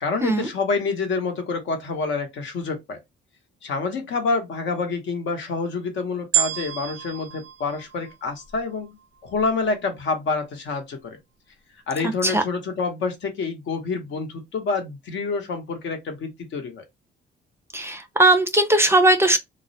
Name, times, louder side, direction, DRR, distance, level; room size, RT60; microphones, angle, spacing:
voice 1, 0.0-3.0 3.6-9.0 9.2-11.2 11.9-16.8, left 4 dB, 70° left, 0.8 m, -27 dB
sound 1, 6.3-8.7 9.4-9.5, right 11 dB, 85° right, 0.5 m, -28 dB
voice 2, 17.7-19.4, right 2 dB, 10° right, 0.4 m, -18 dB
2.3 x 2.0 x 2.6 m
cardioid pair, 90°, 20 cm